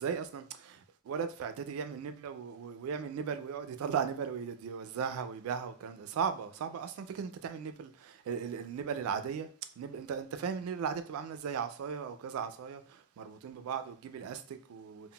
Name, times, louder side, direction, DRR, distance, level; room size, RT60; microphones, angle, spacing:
voice 1, 0.0-9.5 9.8-15.1, right 7 dB, 85° right, 0.3 m, -37 dB
2.2 x 2.1 x 3.7 m
head